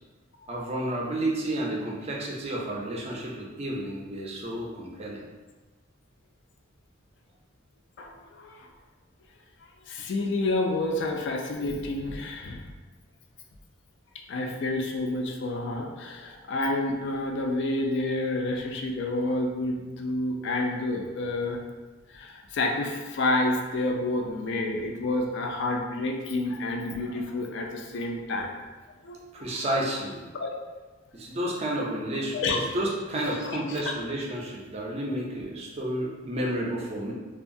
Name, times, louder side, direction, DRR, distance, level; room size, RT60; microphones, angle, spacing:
voice 1, 0.5-5.2 29.3-30.3 31.1-37.1, right 1 dB, 30° right, -3 dB, 0.4 m, -31 dB
voice 2, 8.4-8.7 9.9-12.6 14.3-21.6 22.1-28.5 29.0-29.2 30.3-30.5 32.3-32.6 33.2-33.8, left 2 dB, 60° left, 1 dB, 0.3 m, -29 dB
2.7 x 2.3 x 2.5 m, 1.3 s
head